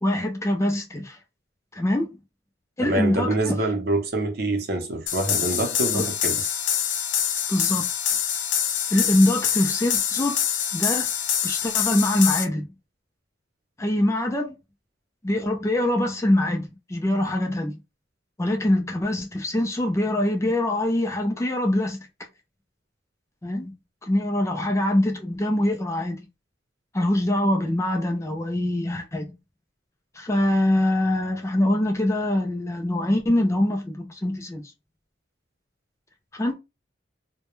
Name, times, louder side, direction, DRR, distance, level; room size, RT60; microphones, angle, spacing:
voice 1, 0.0-1.2 1.7-2.1 2.8-3.6 5.9-6.1 7.5-7.9 8.9-10.4 10.7-11.1 11.4-12.6 13.8-14.6 15.2-17.8 18.4-22.1 23.4-23.7 24.0-26.3 26.9-29.4 30.1-34.6 36.3-36.5, left 1 dB, 15° left, 0.4 m, -24 dB
voice 2, 2.8-6.5, right 2 dB, 55° right, 0.6 m, -26 dB
sound 1, 5.1-12.4, left 9 dB, 80° left, 0.5 m, -25 dB
2.2 x 2.1 x 3.0 m
head